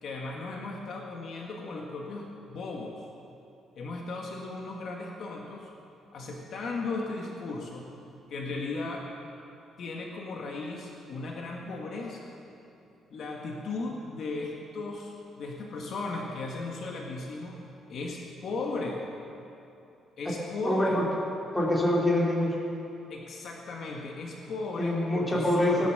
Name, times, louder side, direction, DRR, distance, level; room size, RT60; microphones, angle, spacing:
voice 1, 0.0-3.1 3.8-5.7 6.1-7.9 8.3-9.1 9.8-12.4 13.1-17.6 17.9-19.0 20.2-21.0 23.1-25.9, left 3 dB, 45° left, -1 dB, 1.7 m, -36 dB
voice 2, 20.6-21.1 21.5-22.5 24.8-25.9, left 1 dB, 10° left, -3 dB, 2.6 m, -25 dB
17.5 x 12.0 x 6.7 m, 2.7 s
cardioid pair, 170°, 0 cm